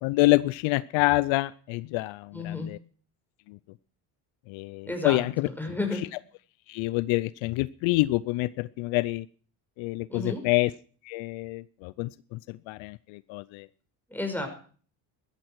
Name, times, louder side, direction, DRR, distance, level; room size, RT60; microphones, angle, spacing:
voice 1, 0.0-2.8 3.5-3.6 4.5-5.5 6.7-9.3 9.8-10.7 11.1-13.7, left 20 dB, 75° left, 19 dB, 0.6 m, -27 dB
voice 2, 2.3-2.7 4.9-5.2 5.6-6.0 10.1-10.4 14.1-14.5, left 2 dB, 5° left, 4 dB, 5.5 m, -31 dB
14.5 x 13.5 x 4.7 m, 0.43 s
supercardioid pair, 85°, 47 cm